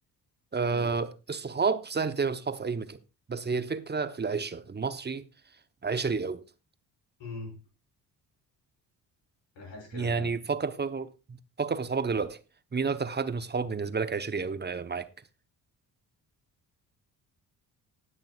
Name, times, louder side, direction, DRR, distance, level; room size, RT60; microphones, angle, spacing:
voice 1, 0.5-3.0 3.3-5.3 5.8-6.4 9.9-12.4 12.7-15.1, right 5 dB, 20° right, 0.9 m, -30 dB
voice 2, 7.2-7.6 9.6-10.4, left 3 dB, 60° left, 5.5 m, -42 dB
19.0 x 6.5 x 2.4 m
hypercardioid pair, 45°, 48 cm